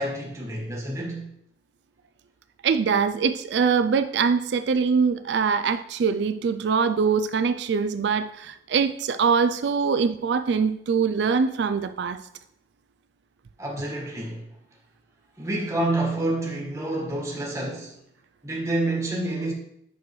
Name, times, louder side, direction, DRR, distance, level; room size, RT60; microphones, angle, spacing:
voice 1, 0.0-1.3 13.6-14.5 15.4-18.0 18.4-19.5, right 1 dB, 15° right, 1.5 m, -28 dB
voice 2, 2.6-12.2, right 5 dB, 75° right, 0.4 m, -23 dB
8.2 x 6.4 x 3.1 m
head